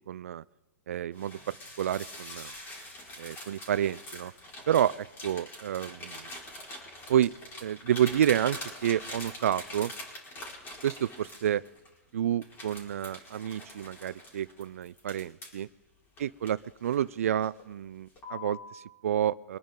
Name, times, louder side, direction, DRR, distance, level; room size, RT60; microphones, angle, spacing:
voice 1, 0.1-0.4 0.9-2.5 3.2-4.3 4.7-6.3 7.1-7.3 7.6-9.9 10.8-11.6 12.1-15.7 16.2-19.6, right 10 dB, 65° right, 17 dB, 0.5 m, -29 dB
sound 1, 1.1-11.9 12.4-15.6 16.2-17.1 17.4-17.7 18.2-18.7, left 1 dB, 25° left, 4.8 m, -44 dB
24.0 x 10.5 x 3.8 m, 1.0 s
figure-of-eight pair, 110°, 8 cm